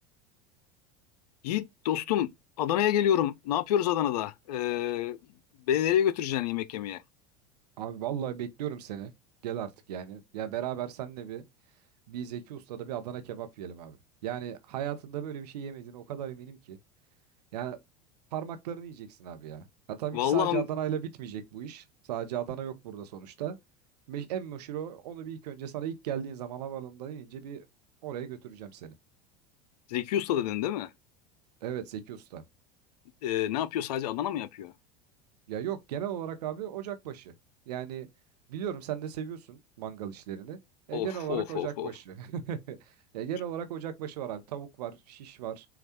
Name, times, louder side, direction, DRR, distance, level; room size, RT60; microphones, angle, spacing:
voice 1, 1.4-2.3 2.6-5.2 5.7-7.0 20.1-20.6 29.9-30.9 33.2-34.7 40.9-41.9, left 11 dB, 75° left, 0.4 m, -28 dB
voice 2, 7.8-9.1 9.4-11.4 12.1-14.0 14.2-16.8 17.5-17.8 18.3-19.7 20.0-23.6 24.1-27.6 28.0-28.9 31.6-32.4 35.5-37.3 37.7-38.1 38.5-40.6 40.9-45.7, right 10 dB, 80° right, 0.8 m, -36 dB
5.8 x 2.3 x 2.8 m
hypercardioid pair, 90°, 20 cm